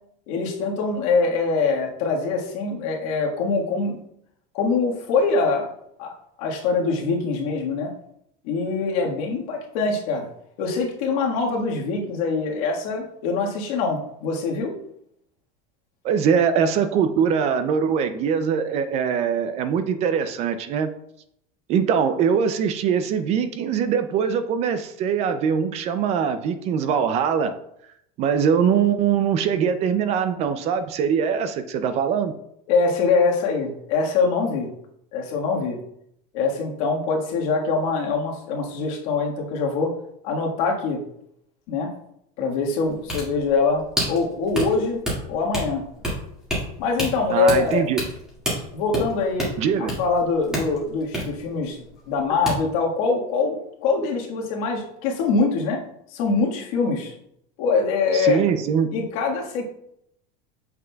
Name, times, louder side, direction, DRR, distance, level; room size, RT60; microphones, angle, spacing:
voice 1, 0.3-4.0 4.5-5.7 6.0-6.1 6.4-7.9 8.4-10.3 10.6-14.7 32.7-34.7 35.1-35.8 36.3-39.9 40.2-41.0 41.7-41.9 42.4-45.0 45.3-45.8 46.8-47.9 48.7-49.5 49.8-51.8 52.1-55.8 56.1-57.1 57.6-58.4 58.9-59.6, left 4 dB, 65° left, 0 dB, 1.6 m, -23 dB
voice 2, 16.0-20.9 21.7-27.5 28.2-32.3 47.3-48.0 49.6-49.9 58.1-58.9, right 7 dB, 35° right, 10 dB, 0.4 m, -22 dB
sound 1, 42.8-52.2 52.5-52.6, equal, 5° right, 1.9 m, -29 dB
7.5 x 5.9 x 2.3 m, 0.74 s
cardioid pair, 165°, 19 cm